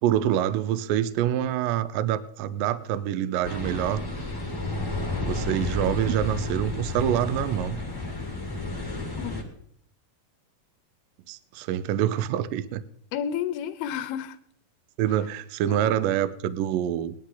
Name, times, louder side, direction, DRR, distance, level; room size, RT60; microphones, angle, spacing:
voice 1, 0.0-4.0 5.2-7.8 11.3-12.8 15.0-17.2, right 11 dB, 80° right, 2.0 m, -26 dB
sound 1, 3.4-9.4, left 2 dB, 15° left, 0.9 m, -31 dB
voice 2, 13.1-14.4 15.7-16.2, left 9 dB, 80° left, 2.5 m, -32 dB
20.0 x 11.5 x 3.9 m
omnidirectional pair, 4.7 m